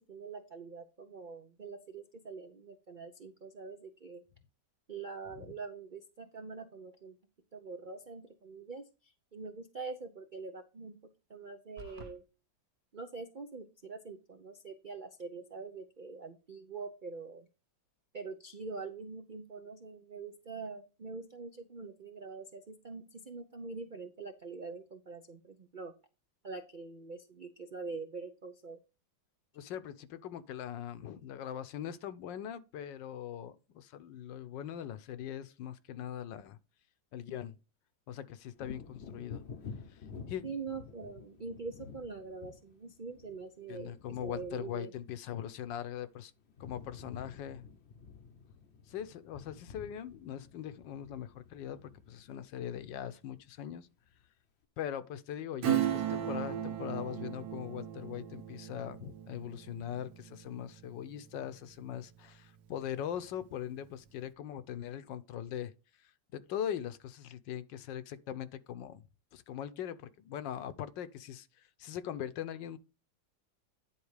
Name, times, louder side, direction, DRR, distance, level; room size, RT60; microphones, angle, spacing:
voice 1, 0.0-4.2 4.9-7.2 7.5-11.0 11.3-12.2 12.9-17.5 18.1-25.9 26.4-28.8 40.4-43.9 44.2-44.9, right 4 dB, 80° right, 0.4 m, -44 dB
sound 1, 11.8-12.2, right 1 dB, 40° right, 1.0 m, -48 dB
voice 2, 29.5-36.6 37.1-37.6 38.1-39.4 39.9-40.0 40.3-40.4 43.7-46.3 46.6-47.7 48.9-53.9 54.8-65.7 66.3-69.0 69.3-72.8, left 10 dB, 75° left, 1.4 m, -41 dB
Wind / Thunder, 38.5-46.1 46.4-53.6 54.1-54.2, left 5 dB, 50° left, 0.8 m, -51 dB
Acoustic guitar / Strum, 55.6-61.8 62.2-62.3, right 11 dB, 65° right, 1.5 m, -36 dB
10.0 x 4.1 x 4.8 m
omnidirectional pair, 2.1 m